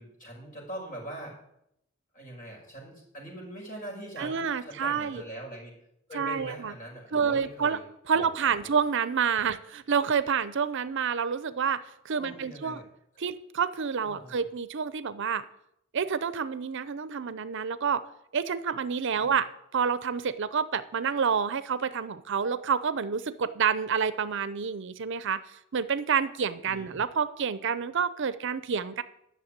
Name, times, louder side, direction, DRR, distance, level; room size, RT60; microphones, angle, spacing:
voice 1, 0.0-1.4 2.1-5.8 6.1-7.8 8.1-8.7 9.3-9.5 12.2-12.8 13.1-13.2 14.0-14.5 19.1-19.3 26.6-27.0, right 1 dB, 40° left, -1 dB, 5.4 m, -43 dB
voice 2, 4.2-5.2 6.1-6.7 7.1-7.8 8.1-12.8 13.2-15.4 15.9-18.1 18.3-19.5 19.7-25.4 25.7-29.0, right 6 dB, 60° right, 14 dB, 0.6 m, -28 dB
11.0 x 6.6 x 8.6 m, 0.78 s
head